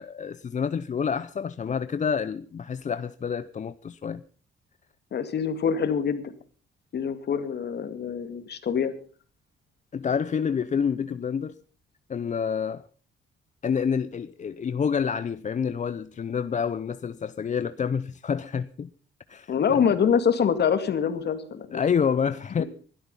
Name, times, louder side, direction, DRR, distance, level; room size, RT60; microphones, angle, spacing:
voice 1, 0.0-4.2 9.9-11.6 12.1-12.8 13.6-18.9 19.3-19.8 21.7-22.6, left 6 dB, 40° left, 0.7 m, -28 dB
voice 2, 5.1-6.3 6.9-8.9 19.5-21.8 22.6-22.7, left 7 dB, 55° left, 2.3 m, -25 dB
20.0 x 12.5 x 5.6 m
cardioid pair, 90°, 20 cm